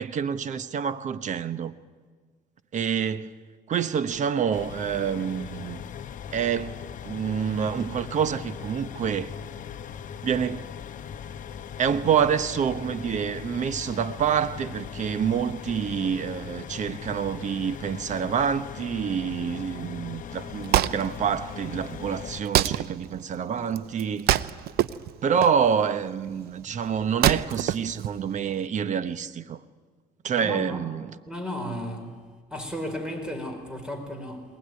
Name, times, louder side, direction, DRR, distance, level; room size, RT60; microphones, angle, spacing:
voice 1, 0.0-1.7 2.7-3.3 3.7-5.8 6.3-9.3 10.2-10.7 11.8-24.5 25.2-29.6 30.2-31.2, right 7 dB, 45° right, 1.1 m, -27 dB
sound 1, 4.5-22.4, left 8 dB, 50° left, 1.0 m, -39 dB
Wood, 20.3-28.7, right 12 dB, 70° right, 0.7 m, -28 dB
voice 2, 30.4-30.8 31.3-32.1 32.5-34.4, equal, 5° right, 5.1 m, -34 dB
21.0 x 20.0 x 9.7 m
cardioid pair, 110°, 17 cm